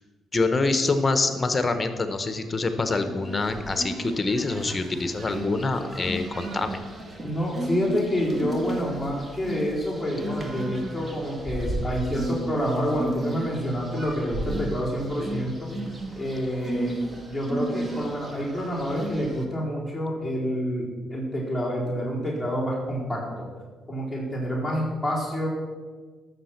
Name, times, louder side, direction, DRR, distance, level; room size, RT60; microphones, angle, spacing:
voice 1, 0.3-6.8, left 3 dB, 25° left, 9 dB, 1.0 m, -25 dB
sound 1, 2.9-19.4, right 1 dB, 25° right, 1.8 m, -34 dB
voice 2, 7.2-15.7 16.1-16.9 17.3-23.5 23.9-25.5, equal, 10° right, -5 dB, 4.1 m, -28 dB
13.0 x 6.6 x 5.9 m, 1.4 s
cardioid pair, 90°, 0 cm